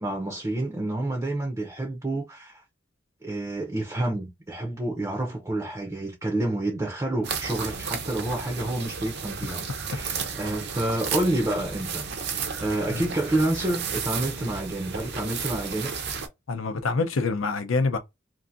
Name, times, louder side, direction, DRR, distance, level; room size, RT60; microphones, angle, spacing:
voice 1, 0.0-2.6 3.2-12.1 12.4-15.9, right 1 dB, 15° right, 0.5 m, -29 dB
sound 1, 7.2-16.3, right 6 dB, 55° right, 0.6 m, -33 dB
voice 2, 16.5-18.0, left 3 dB, 85° left, 0.6 m, -26 dB
2.7 x 2.5 x 2.4 m
head